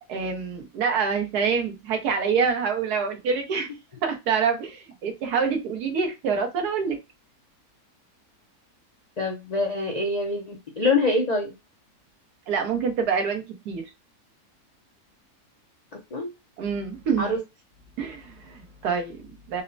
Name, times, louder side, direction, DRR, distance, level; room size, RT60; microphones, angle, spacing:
voice 1, 0.1-3.7 4.0-7.0 12.5-13.9 16.6-17.4 18.0-19.6, right 6 dB, 80° right, 1.4 m, -26 dB
voice 2, 9.2-11.5 16.1-16.3 17.2-17.4, left 2 dB, 75° left, 0.3 m, -25 dB
4.1 x 2.0 x 2.6 m
omnidirectional pair, 1.6 m